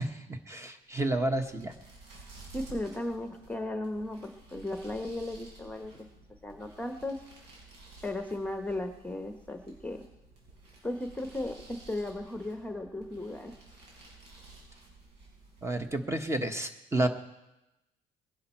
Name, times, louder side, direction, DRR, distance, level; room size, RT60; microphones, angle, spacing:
voice 1, 0.0-1.7 15.6-17.1, right 1 dB, 15° right, 6 dB, 1.3 m, -30 dB
sound 1, 0.9-16.4, right 3 dB, 85° right, 5.8 m, -53 dB
voice 2, 2.5-6.1 6.4-7.2 8.0-10.0 10.8-13.6, left 1 dB, 10° left, 6 dB, 1.0 m, -36 dB
21.5 x 10.5 x 4.5 m, 0.94 s
cardioid pair, 110°, 17 cm